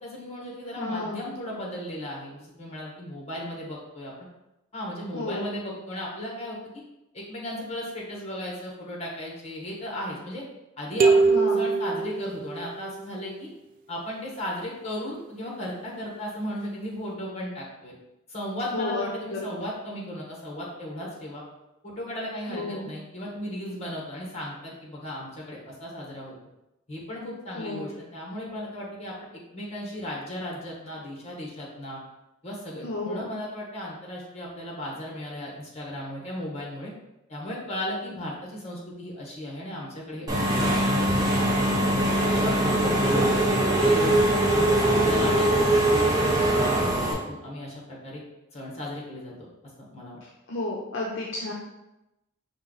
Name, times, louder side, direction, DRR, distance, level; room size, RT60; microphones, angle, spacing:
voice 1, 0.0-4.1 4.7-6.8 7.1-10.4 10.8-13.5 13.9-17.9 18.3-21.4 21.8-26.3 26.9-29.1 29.5-32.0 32.4-36.9 37.3-44.2 44.5-48.2 48.5-49.3 49.9-50.2, left 1 dB, 30° left, -3 dB, 1.3 m, -35 dB
voice 2, 0.8-1.2 5.1-5.5 11.3-11.6 18.7-19.4 22.5-22.9 27.5-27.9 32.8-33.3 50.5-51.5, left 2 dB, 60° left, -2 dB, 0.6 m, -32 dB
sound 1, 11.0-12.9, right 4 dB, 45° right, 0.3 m, -22 dB
Engine / Mechanisms, 40.3-47.1, right 1 dB, 20° right, 0.8 m, -22 dB
5.4 x 2.4 x 3.9 m, 0.94 s
head